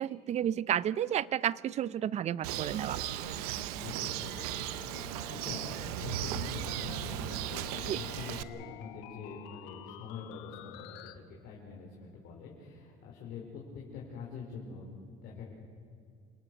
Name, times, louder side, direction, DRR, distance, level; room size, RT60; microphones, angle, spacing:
voice 1, 0.0-3.0 7.9-8.0, right 10 dB, 35° right, 20 dB, 0.5 m, -31 dB
Bird, 2.4-8.4, right 13 dB, 85° right, 0.8 m, -37 dB
sound 1, 2.7-11.1, left 13 dB, 75° left, 1.3 m, -49 dB
voice 2, 3.8-4.7 5.3-13.4 13.7-15.5, left 5 dB, 60° left, -3 dB, 4.6 m, -45 dB
28.0 x 18.0 x 6.8 m, 2.3 s
supercardioid pair, 110°, 19 cm